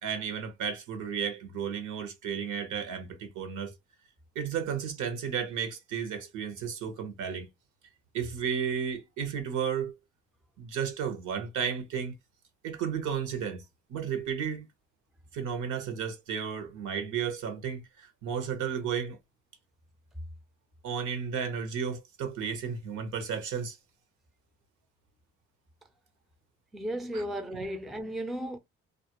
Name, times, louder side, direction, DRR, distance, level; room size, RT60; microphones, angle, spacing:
voice 1, 0.0-3.7 4.3-7.5 8.1-9.9 10.6-12.1 12.6-13.6 13.9-14.7 15.3-19.2 20.8-23.8 27.1-27.2, right 7 dB, 80° right, 0.9 m, -33 dB
voice 2, 26.7-28.6, right 1 dB, ahead, 0.4 m, -34 dB
2.4 x 2.0 x 2.9 m
cardioid pair, 90°, 30 cm